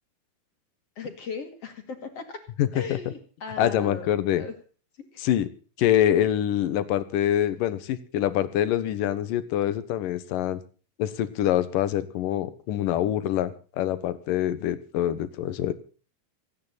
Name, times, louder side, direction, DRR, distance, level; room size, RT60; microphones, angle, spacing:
voice 1, 1.0-2.4 2.7-4.1 4.4-4.5 5.1-5.2, left 5 dB, 45° left, 7 dB, 3.0 m, -37 dB
voice 2, 2.6-3.0 3.6-4.5 5.2-5.5 5.8-10.6 11.0-15.7, left 11 dB, 70° left, 14 dB, 2.7 m, -25 dB
26.0 x 9.6 x 4.0 m, 0.39 s
omnidirectional pair, 4.2 m